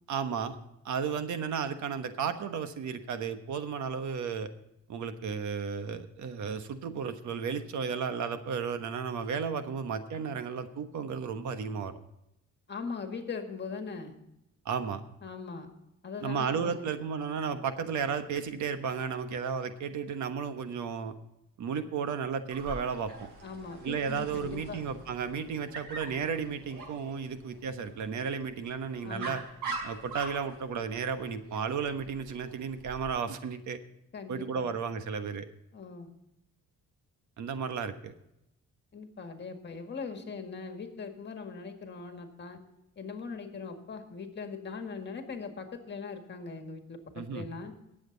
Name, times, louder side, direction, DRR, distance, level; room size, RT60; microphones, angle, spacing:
voice 1, 0.1-0.6 0.8-4.5 4.9-11.9 14.6-15.0 16.2-21.1 21.6-23.3 23.8-29.4 29.8-33.8 34.3-35.5 37.4-38.1 47.1-47.5, right 6 dB, 70° right, 9 dB, 1.3 m, -33 dB
voice 2, 12.7-14.2 15.2-15.7 16.0-16.8 23.4-24.8 29.0-29.4 34.1-34.7 35.7-36.1 38.9-42.6 43.0-47.7, left 5 dB, 35° left, 5 dB, 1.9 m, -40 dB
Dog, 22.5-33.1, right 3 dB, 85° right, 5.1 m, -44 dB
19.0 x 7.8 x 4.0 m, 0.85 s
cardioid pair, 135°, 30 cm